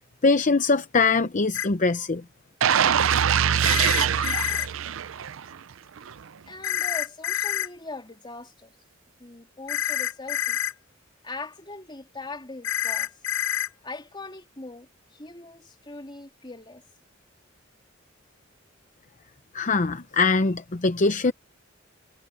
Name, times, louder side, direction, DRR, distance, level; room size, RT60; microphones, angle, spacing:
voice 1, 0.2-2.2 19.5-21.3, left 3 dB, 40° left, 0.7 m, -22 dB
sound 1, 1.5-1.7 3.6-4.7 6.6-7.7 9.7-10.7 12.6-13.7, left 11 dB, 75° left, 0.7 m, -27 dB
sound 2, 2.6-5.6 6.0-6.1, right 8 dB, 80° right, 0.5 m, -23 dB
voice 2, 6.5-8.8 9.2-10.6 11.2-13.2 13.8-16.8, left 2 dB, 25° left, 3.4 m, -40 dB
head